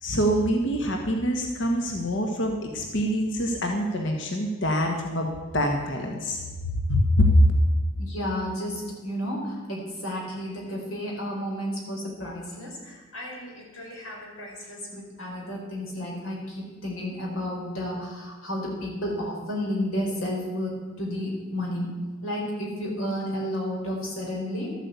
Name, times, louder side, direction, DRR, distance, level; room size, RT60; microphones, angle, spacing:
voice 1, 0.0-5.3 5.5-6.4 6.7-7.5, equal, 65° left, 2 dB, 1.6 m, -24 dB
voice 2, 8.0-21.9 22.2-24.7, equal, 90° left, -1 dB, 4.6 m, -32 dB
13.0 x 9.0 x 8.1 m, 1.3 s
head